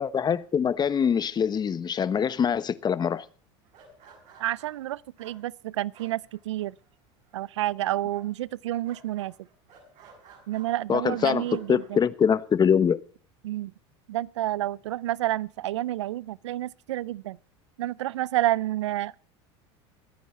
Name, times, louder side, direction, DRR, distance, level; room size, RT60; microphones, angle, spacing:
voice 1, 0.0-3.2 10.9-11.4 11.7-13.0, left 7 dB, 30° left, 1.0 m, -24 dB
sound 1, 3.6-6.9 7.2-7.7 8.1-10.7 11.1-11.9, right 5 dB, 55° right, 6.9 m, -54 dB
voice 2, 4.4-6.8 7.3-9.3 10.5-12.0 13.4-13.7 14.1-17.4 17.8-19.2, right 14 dB, 85° right, 0.5 m, -29 dB
23.5 x 9.3 x 3.2 m
hypercardioid pair, 95°, 15 cm